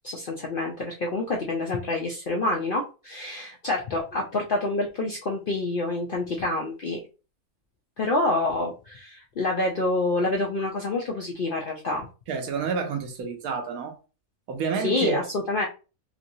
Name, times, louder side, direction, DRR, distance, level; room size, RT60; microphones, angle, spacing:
voice 1, 0.0-7.0 8.0-12.1 14.8-15.7, left 2 dB, 60° left, 0.5 m, -27 dB
voice 2, 12.3-14.0 14.5-15.2, right 5 dB, 80° right, 1.2 m, -29 dB
3.0 x 2.9 x 2.6 m
omnidirectional pair, 1.5 m